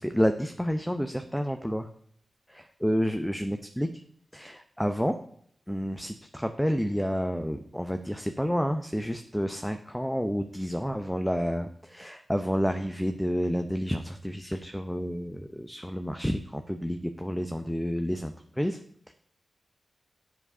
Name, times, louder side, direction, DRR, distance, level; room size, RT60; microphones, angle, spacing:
voice 1, 0.0-1.9 2.5-3.9 4.3-5.2 5.7-18.8 19.1-19.2, equal, 5° left, 7 dB, 0.6 m, -30 dB
7.8 x 4.9 x 5.5 m, 0.65 s
cardioid pair, 40°, 0 cm